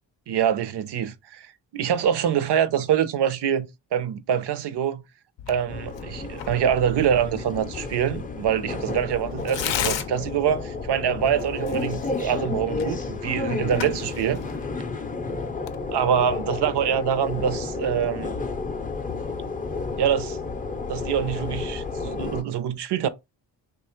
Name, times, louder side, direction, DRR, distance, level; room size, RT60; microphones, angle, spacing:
voice 1, 0.3-3.7 3.9-5.0 5.5-14.4 15.9-18.4 20.0-20.4 20.9-23.1, right 9 dB, 60° right, 0.6 m, -25 dB
Tearing, 5.4-16.9, left 10 dB, 70° left, 0.5 m, -37 dB
sound 1, 5.7-22.4, left 4 dB, 20° left, 0.5 m, -32 dB
3.0 x 2.4 x 4.2 m
cardioid pair, 80°, 45 cm